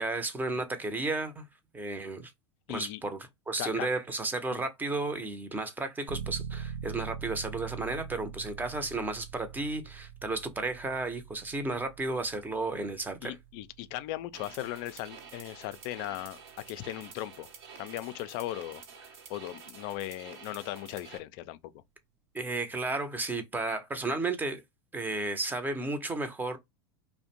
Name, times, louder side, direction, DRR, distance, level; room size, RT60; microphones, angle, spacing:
voice 1, 0.0-1.4 1.7-2.3 2.7-3.2 3.5-13.3 22.3-24.6 24.9-26.6, right 2 dB, 15° right, 0.6 m, -33 dB
voice 2, 2.7-3.0 3.6-3.9 4.5-4.6 13.2-16.4 16.7-17.5 17.8-18.8 19.3-21.7, left 15 dB, 55° left, 0.4 m, -38 dB
sound 1, 6.1-16.6, right 7 dB, 85° right, 0.5 m, -44 dB
sound 2, 14.3-21.2, right 6 dB, 65° right, 0.9 m, -49 dB
2.5 x 2.1 x 2.7 m
hypercardioid pair, 100°, 14 cm